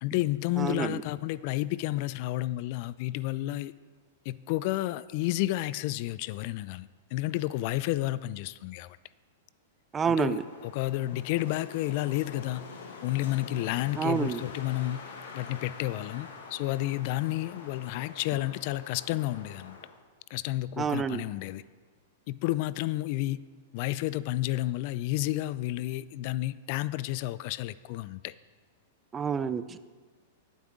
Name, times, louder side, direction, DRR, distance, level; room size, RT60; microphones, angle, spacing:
voice 1, 0.0-3.7 4.3-9.0 10.0-12.6 13.0-15.0 15.3-19.8 20.3-21.6 22.3-23.4 23.7-28.3, left 16 dB, 50° left, 18 dB, 0.3 m, -31 dB
voice 2, 0.6-1.0 9.9-10.4 14.0-14.4 20.8-21.2 29.1-29.8, right 6 dB, 20° right, 14 dB, 0.5 m, -28 dB
Wind, 10.1-20.0, left 5 dB, 75° left, 1.8 m, -46 dB
17.0 x 8.1 x 3.7 m, 1.5 s
hypercardioid pair, 115°, 0 cm